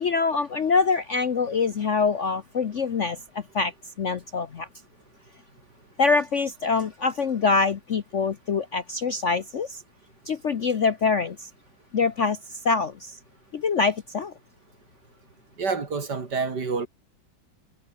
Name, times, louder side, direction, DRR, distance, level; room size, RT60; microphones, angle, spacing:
voice 1, 0.0-3.2 3.5-3.7 4.0-4.7 6.0-9.7 10.3-11.3 11.9-12.4 12.6-12.9 13.6-14.3, left 4 dB, 50° left, 1.0 m, -24 dB
voice 2, 15.6-16.9, right 4 dB, 55° right, 3.3 m, -28 dB
omnidirectional pair, 2.2 m